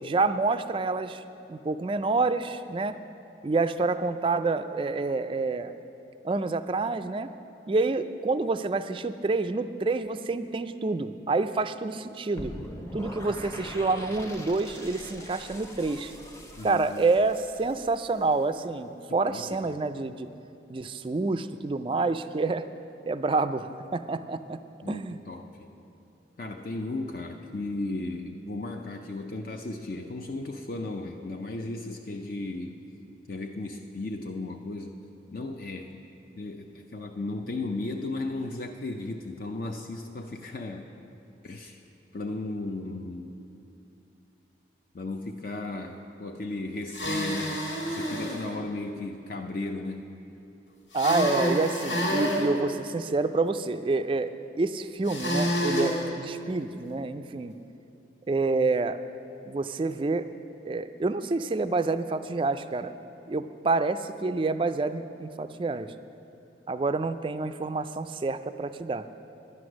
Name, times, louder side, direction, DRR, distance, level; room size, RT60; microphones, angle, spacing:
voice 1, 0.0-1.2 1.5-3.0 3.4-5.7 6.2-7.3 7.7-12.5 12.9-16.1 16.6-20.3 20.7-22.6 23.0-23.7 23.9-24.6 24.9-25.2 50.9-54.3 54.6-57.5 58.3-59.0 59.4-60.2 60.7-62.9 63.3-65.9 66.7-69.0, right 3 dB, 30° right, 10 dB, 0.3 m, -28 dB
sound 1, 12.4-18.4, equal, 15° left, 0.8 m, -42 dB
voice 2, 16.6-17.1 19.3-19.6 24.8-25.7 26.4-32.8 33.3-35.0 35.3-36.1 36.4-40.8 41.4-41.8 42.1-43.4 44.9-47.6 47.9-50.0, left 2 dB, 50° left, 3 dB, 0.5 m, -35 dB
sound 2, 46.9-48.4 50.9-52.4 55.1-56.0, equal, 65° left, 1.9 m, -28 dB
11.0 x 9.6 x 6.2 m, 2.8 s
head